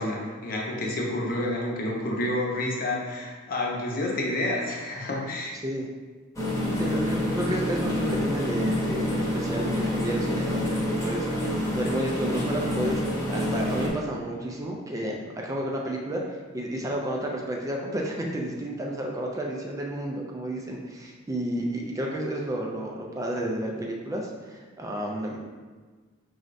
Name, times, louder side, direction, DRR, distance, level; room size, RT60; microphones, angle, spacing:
voice 1, 0.0-5.5, left 1 dB, 45° left, -2 dB, 0.7 m, -29 dB
sound 1, 6.4-13.9, left 1 dB, 15° left, 1.0 m, -27 dB
voice 2, 6.8-25.4, right 1 dB, 15° right, 0 dB, 0.3 m, -31 dB
5.0 x 3.2 x 2.5 m, 1.4 s
head